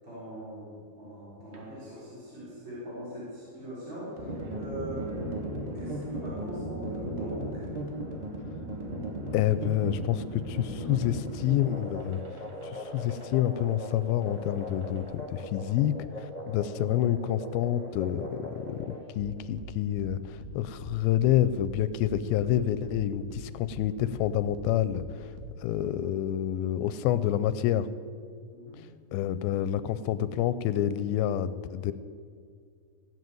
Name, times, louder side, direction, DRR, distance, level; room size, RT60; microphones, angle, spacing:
voice 1, 0.0-5.1 5.7-7.7 28.5-28.9, equal, 30° right, -8 dB, 4.3 m, -41 dB
sound 1, 1.5-16.1, right 2 dB, 45° right, 2.1 m, -52 dB
sound 2, 4.2-19.0, right 1 dB, 15° right, 1.6 m, -37 dB
voice 2, 9.3-12.2 12.6-25.3 25.6-27.9 29.1-31.9, left 11 dB, 80° left, 15 dB, 2.3 m, -28 dB
sound 3, 17.2-25.8, equal, 70° right, 3.0 m, -46 dB
17.5 x 7.4 x 9.2 m, 2.2 s
omnidirectional pair, 4.5 m